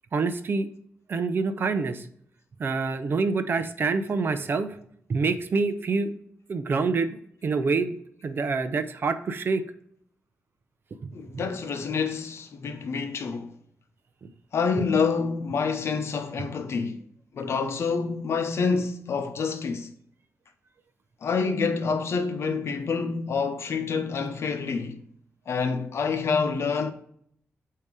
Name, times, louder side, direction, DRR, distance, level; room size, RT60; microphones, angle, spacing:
voice 1, 0.1-0.7 1.1-2.1 2.6-4.8 5.1-6.1 6.5-7.2 7.4-8.0 8.2-9.6 11.3-11.4 14.2-14.3, right 4 dB, 45° right, 0.6 m, -26 dB
voice 2, 11.1-13.5 14.5-17.0 17.3-19.9 21.2-25.0 25.5-26.9, left 5 dB, 65° left, 0.8 m, -27 dB
8.3 x 2.9 x 4.7 m
wide cardioid pair, 125°, 5 cm